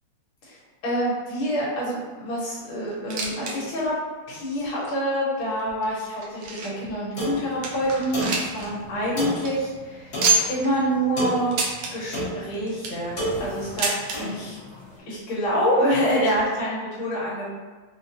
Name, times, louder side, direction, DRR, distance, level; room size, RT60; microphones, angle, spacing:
voice 1, 0.4-4.0 4.3-10.1 10.5-11.5 11.9-14.6 15.1-17.5, equal, 80° left, -7 dB, 1.9 m, -26 dB
sound 1, 2.9-3.5 3.8-3.9 4.6-4.7 5.4-6.9 7.3-7.4 7.6-8.7 9.0-9.1 9.3-9.5 10.2-10.7 11.5-11.9 12.5-13.1 13.8-14.2 15.1-15.2 15.4-15.5 16.3-16.4, right 3 dB, 70° right, 1.2 m, -26 dB
sound 2, 7.2-14.9, equal, 50° left, 1.6 m, -33 dB
4.6 x 2.2 x 2.8 m, 1.3 s
omnidirectional pair, 2.3 m